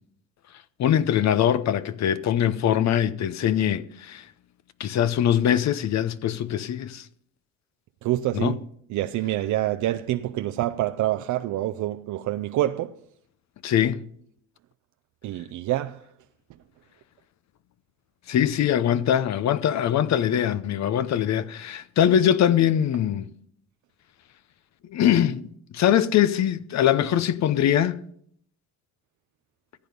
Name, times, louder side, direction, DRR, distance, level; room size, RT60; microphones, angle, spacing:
voice 1, 0.8-4.3 4.8-7.1 8.3-8.6 13.6-14.0 18.3-23.3 24.9-25.5 25.7-28.0, left 10 dB, 65° left, 0.7 m, -22 dB
voice 2, 8.0-8.6 8.9-13.0 15.2-16.1, right 14 dB, 75° right, 0.5 m, -26 dB
15.0 x 8.5 x 5.1 m
cardioid pair, 90°, 30 cm